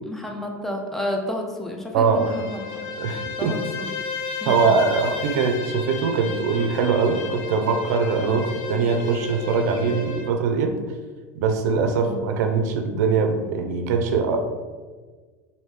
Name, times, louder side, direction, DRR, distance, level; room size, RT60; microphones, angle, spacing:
voice 1, 0.1-2.8 3.4-3.9 4.4-4.5 8.2-8.4 11.9-12.2, left 1 dB, 5° left, 1 dB, 0.5 m, -31 dB
voice 2, 1.9-2.3 3.0-3.6 4.5-10.7 11.4-14.4, right 5 dB, 75° right, 5 dB, 0.5 m, -22 dB
Bowed string instrument, 2.0-10.3, left 6 dB, 75° left, 0.4 m, -33 dB
3.1 x 2.7 x 3.3 m, 1.4 s
supercardioid pair, 110°, 9 cm